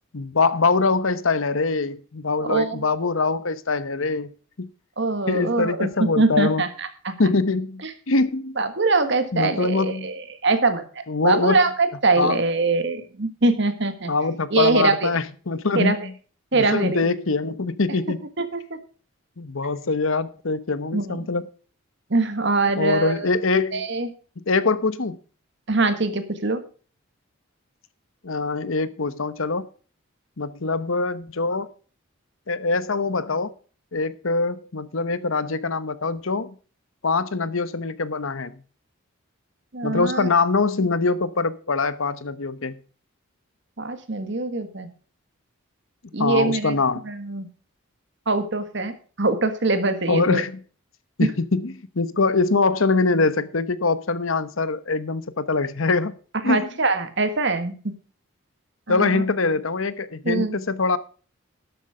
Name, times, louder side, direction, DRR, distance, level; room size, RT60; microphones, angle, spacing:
voice 1, 0.1-4.3 4.6-4.7 5.3-6.6 7.2-8.6 9.3-10.1 11.1-11.6 12.2-12.4 14.1-16.1 16.5-18.2 19.4-21.4 22.7-23.8 24.5-25.2 28.2-29.7 30.4-31.7 32.5-33.5 33.9-36.5 37.0-38.6 39.8-42.8 46.2-47.0 50.1-50.6 51.2-56.1 56.4-56.7 58.9-61.0, left 3 dB, 70° left, 1.0 m, -23 dB
voice 2, 2.4-2.8 5.0-7.1 7.8-7.9 8.6-10.8 11.2-14.1 14.5-15.1 15.7-16.0 16.5-17.0 18.4-18.6 20.9-21.3 22.1-23.3 23.7-24.1 25.7-26.6 39.7-40.3 43.8-44.9 46.1-46.8 47.0-47.5 48.3-50.4 51.2-51.3 56.4-57.7 58.9-59.2 60.2-60.6, right 3 dB, 55° right, 1.6 m, -23 dB
12.5 x 8.1 x 4.9 m
head